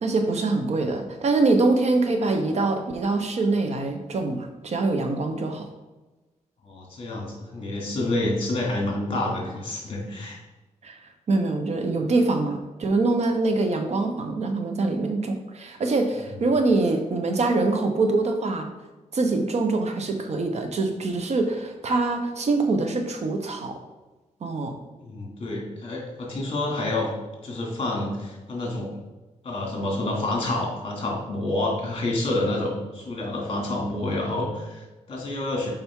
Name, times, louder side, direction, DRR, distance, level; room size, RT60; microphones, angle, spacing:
voice 1, 0.0-5.7 10.8-11.0 11.3-18.7 19.1-23.7 24.4-24.7, right 3 dB, 60° right, 5 dB, 0.9 m, -24 dB
voice 2, 6.6-10.4 25.0-27.1 27.4-28.9 29.4-35.7, left 2 dB, 45° left, -2 dB, 2.4 m, -28 dB
7.2 x 5.1 x 3.7 m, 1.1 s
wide cardioid pair, 120°, 13 cm